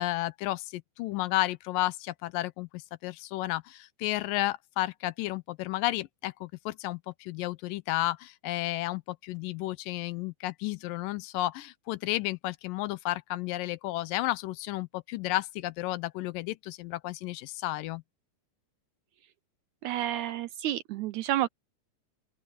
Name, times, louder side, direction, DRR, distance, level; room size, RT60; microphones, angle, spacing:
voice 1, 0.0-18.0, left 17 dB, 85° left, 2.4 m, -32 dB
voice 2, 19.8-21.5, right 13 dB, 80° right, 1.7 m, -30 dB
open air
omnidirectional pair, 3.9 m